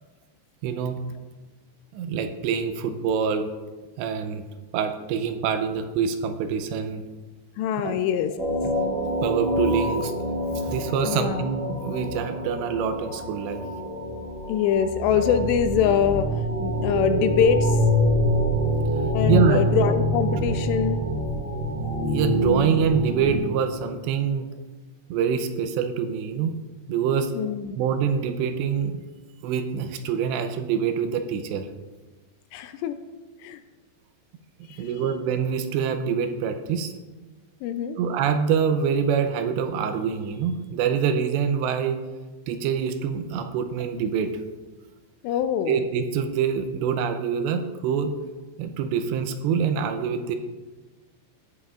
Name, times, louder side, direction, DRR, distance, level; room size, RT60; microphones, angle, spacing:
voice 1, 0.6-1.0 1.9-3.5 4.0-4.4 4.7-7.0 7.8-8.0 9.2-10.1 10.6-13.6 19.3-19.6 22.1-24.5 25.1-26.6 26.9-27.3 27.8-29.0 29.4-31.7 34.8-36.9 38.0-42.0 42.5-44.3 45.7-48.2 48.6-50.4, right 7 dB, 85° right, 7 dB, 2.8 m, -25 dB
voice 2, 7.6-8.4 11.0-11.5 14.5-16.3 16.6-17.8 19.1-21.0 27.3-27.7 32.5-33.0 33.4-33.6 34.7-34.9 37.6-38.0 45.2-45.9, left 8 dB, 80° left, 9 dB, 2.6 m, -24 dB
sound 1, 8.4-23.4, equal, 25° right, 2.0 m, -25 dB
14.5 x 9.6 x 2.5 m, 1.2 s
omnidirectional pair, 5.1 m